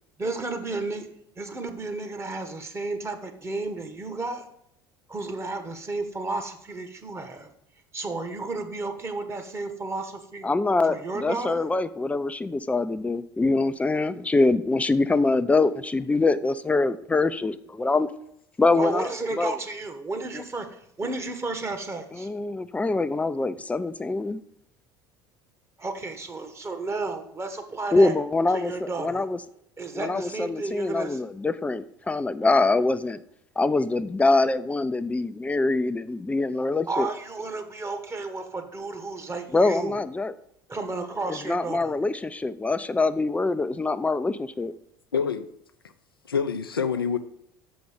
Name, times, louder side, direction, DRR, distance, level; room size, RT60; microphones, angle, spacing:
voice 1, 0.2-1.1 1.3-4.5 5.1-7.5 7.9-10.5 10.8-11.7 18.8-22.3 25.8-28.1 28.5-29.3 29.8-31.2 36.9-40.0 40.7-42.0, right 3 dB, 20° right, 1.4 m, -32 dB
voice 2, 10.4-18.1 18.6-19.1 19.4-19.5 22.2-24.4 27.9-28.7 29.0-29.4 29.9-33.2 33.6-37.1 39.5-40.3 41.3-44.7, left 3 dB, 10° left, 0.5 m, -24 dB
voice 3, 45.1-45.5 46.3-47.2, left 6 dB, 85° left, 0.6 m, -26 dB
6.8 x 5.4 x 6.6 m
figure-of-eight pair, 65°, 12 cm